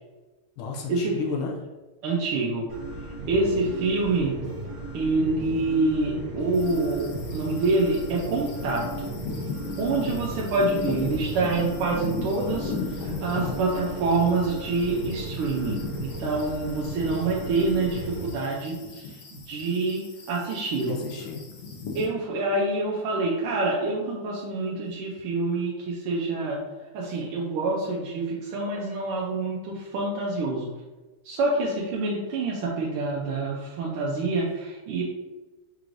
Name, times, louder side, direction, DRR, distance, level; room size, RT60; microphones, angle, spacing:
voice 1, 0.6-1.5 13.0-13.5 20.8-21.4, left 5 dB, 85° left, -1 dB, 1.5 m, -33 dB
voice 2, 2.0-2.7 3.3-4.4 4.9-9.1 9.8-21.0 21.9-26.6 26.9-30.7 31.2-35.0, right 3 dB, 80° right, -4 dB, 1.5 m, -26 dB
sound 1, 2.7-18.3, right 2 dB, 60° right, 2.2 m, -36 dB
sound 2, 6.5-22.1, left 4 dB, 65° left, 1.2 m, -38 dB
5.7 x 3.1 x 2.5 m, 1.2 s
omnidirectional pair, 2.3 m